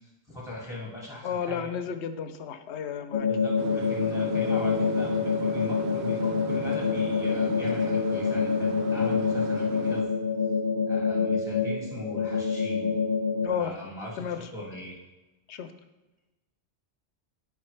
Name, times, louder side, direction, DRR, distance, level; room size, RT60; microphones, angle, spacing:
voice 1, 0.3-1.7 3.3-5.1 5.4-10.0 10.9-12.9 13.5-14.9, left 1 dB, 5° right, -5 dB, 2.0 m, -40 dB
voice 2, 1.2-3.3 13.4-13.7 14.2-14.5 15.5-15.7, left 8 dB, 80° left, 9 dB, 0.9 m, -32 dB
sound 1, 3.1-13.5, left 5 dB, 50° left, 0.5 m, -26 dB
sound 2, 3.6-10.0, right 4 dB, 85° right, 1.0 m, -38 dB
10.5 x 5.1 x 3.2 m, 1.1 s
omnidirectional pair, 1.1 m